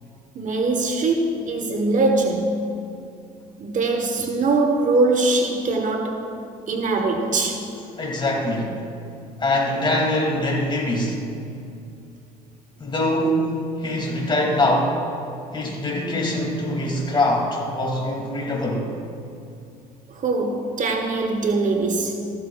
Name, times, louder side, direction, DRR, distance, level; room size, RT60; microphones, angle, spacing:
voice 1, 0.3-2.6 3.6-6.3 6.7-7.7 20.1-22.3, right 3 dB, 45° right, 1.2 m, -22 dB
voice 2, 8.0-8.8 9.4-11.3 12.8-15.0 15.5-18.9, left 1 dB, 25° left, 2.8 m, -23 dB
15.0 x 12.5 x 2.5 m
supercardioid pair, 75°, 18 cm